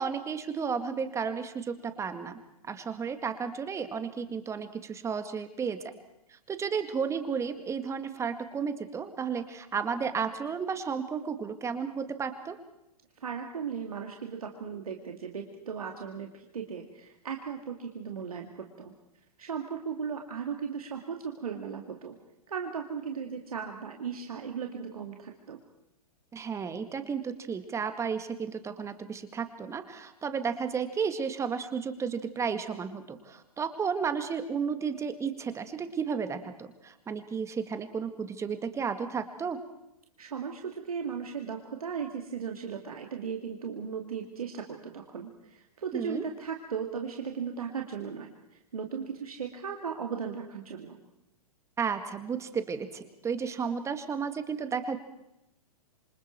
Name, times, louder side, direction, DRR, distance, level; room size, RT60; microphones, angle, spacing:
voice 1, 0.0-2.4 2.7-5.8 6.5-12.6 26.3-39.6 45.9-46.3 51.8-55.0, right 6 dB, 15° right, 9 dB, 2.0 m, -33 dB
voice 2, 13.2-18.9 19.4-22.1 22.5-25.6 40.2-51.0, right 6 dB, 70° right, 3 dB, 2.5 m, -37 dB
28.0 x 25.5 x 4.6 m, 0.86 s
figure-of-eight pair, 110°, 19 cm